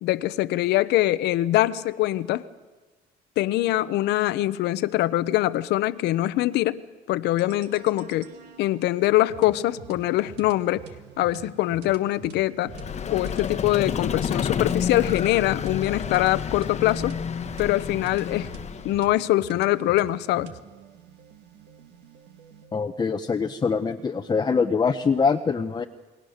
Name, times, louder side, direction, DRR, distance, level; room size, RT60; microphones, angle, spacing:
voice 1, 0.0-2.4 3.4-8.3 8.6-10.8 11.2-12.7 13.1-17.2 17.6-18.5 18.8-20.5, left 15 dB, 80° left, 15 dB, 0.8 m, -23 dB
sound 1, 7.4-22.7, right 6 dB, 80° right, 1.9 m, -46 dB
Vehicle, 12.7-19.1, left 7 dB, 40° left, 1.1 m, -30 dB
voice 2, 22.7-25.8, left 5 dB, 25° left, 6 dB, 0.8 m, -24 dB
28.5 x 20.5 x 6.6 m, 1.3 s
cardioid pair, 110°, 17 cm